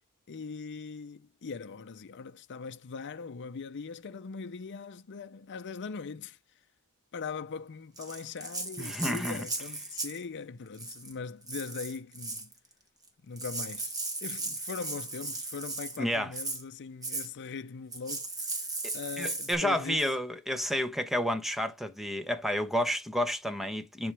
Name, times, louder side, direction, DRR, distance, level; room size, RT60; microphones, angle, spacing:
voice 1, 0.3-6.4 7.1-12.5 13.2-18.6 18.9-20.0, left 5 dB, 55° left, 0.5 m, -41 dB
Rattle (instrument), 8.0-10.2 10.7-11.1 11.5-12.5 13.1-13.2 13.4-16.0 16.3-16.6 17.0-17.3 17.9-19.5, right 2 dB, 15° right, 1.4 m, -37 dB
voice 2, 8.8-9.4 16.0-16.3 18.8-24.1, equal, ahead, 0.9 m, -30 dB
10.5 x 3.9 x 3.3 m
head